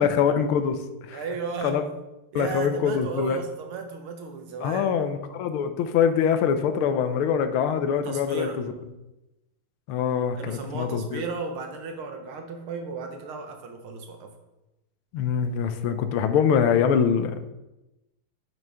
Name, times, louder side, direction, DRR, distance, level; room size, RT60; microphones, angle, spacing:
voice 1, 0.0-1.2 1.6-1.8 2.3-3.4 4.6-8.5 9.9-11.2 15.1-17.5, left 7 dB, 80° left, 9 dB, 1.5 m, -24 dB
voice 2, 1.1-1.9 2.3-4.9 8.0-8.6 10.4-14.3, right 4 dB, 75° right, 4 dB, 1.9 m, -34 dB
8.9 x 6.1 x 3.5 m, 0.99 s
omnidirectional pair, 2.4 m